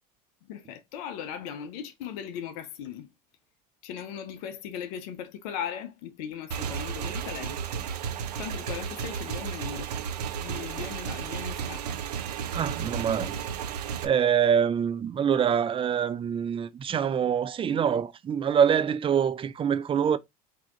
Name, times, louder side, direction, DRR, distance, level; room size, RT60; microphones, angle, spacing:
voice 1, 0.5-3.1 3.8-7.6 8.4-9.9 10.4-11.9, left 9 dB, 65° left, 0.7 m, -38 dB
Motorcycle / Engine, 6.5-14.1, right 8 dB, 85° right, 0.6 m, -33 dB
voice 2, 12.5-13.4 13.8-20.2, right 8 dB, 25° right, 0.5 m, -25 dB
4.9 x 2.8 x 3.6 m
hypercardioid pair, 85°, 20 cm